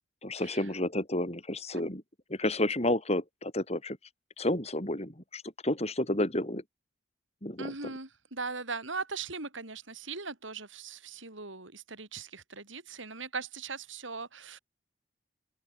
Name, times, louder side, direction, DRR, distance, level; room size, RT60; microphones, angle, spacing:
voice 1, 0.2-2.0 2.3-4.0 4.4-6.6 7.4-7.9, left 1 dB, 35° left, 6.2 m, -31 dB
voice 2, 7.6-14.6, right 4 dB, 80° right, 4.5 m, -39 dB
open air
head